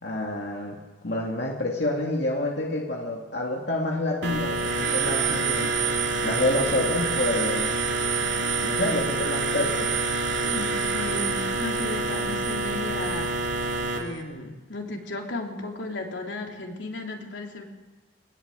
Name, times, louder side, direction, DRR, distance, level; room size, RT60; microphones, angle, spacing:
voice 1, 0.0-0.8 1.0-5.7 6.2-7.7 8.6-9.9, left 2 dB, 70° left, -1 dB, 2.4 m, -28 dB
sound 1, 4.2-14.0, right 3 dB, 80° right, 3.0 m, -26 dB
voice 2, 10.5-13.4 13.9-17.6, left 2 dB, 85° left, 1 dB, 3.4 m, -35 dB
21.0 x 20.5 x 8.0 m, 1.2 s
head